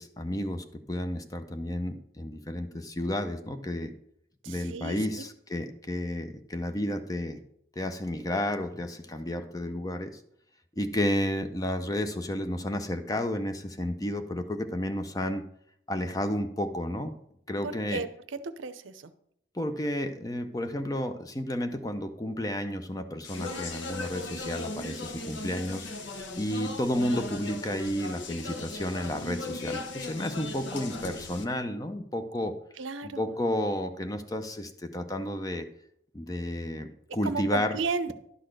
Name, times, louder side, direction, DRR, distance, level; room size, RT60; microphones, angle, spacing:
voice 1, 0.0-3.9 4.5-7.4 7.8-10.2 10.8-15.4 15.9-17.1 17.5-18.0 19.5-25.9 26.4-32.6 33.2-35.7 36.1-37.8, left 1 dB, 20° left, 8 dB, 0.5 m, -32 dB
voice 2, 4.4-5.0 17.6-19.1 32.8-33.3 37.2-38.1, right 4 dB, 90° right, 13 dB, 0.6 m, -34 dB
Speech, 23.2-31.4, left 2 dB, 70° left, 0.8 m, -38 dB
11.0 x 4.0 x 6.5 m, 0.73 s
head